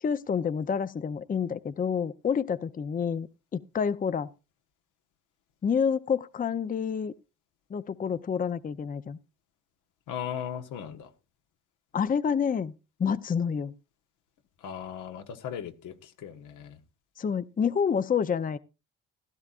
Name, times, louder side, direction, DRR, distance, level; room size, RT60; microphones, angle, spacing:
voice 1, 0.0-4.3 5.6-7.1 7.7-9.2 11.9-12.7 13.0-13.7 17.2-18.6, left 6 dB, 30° left, 15 dB, 0.6 m, -28 dB
voice 2, 10.1-11.1 14.6-16.8, left 9 dB, 85° left, 6 dB, 1.3 m, -37 dB
15.5 x 12.5 x 2.4 m, 0.29 s
cardioid pair, 90°, 30 cm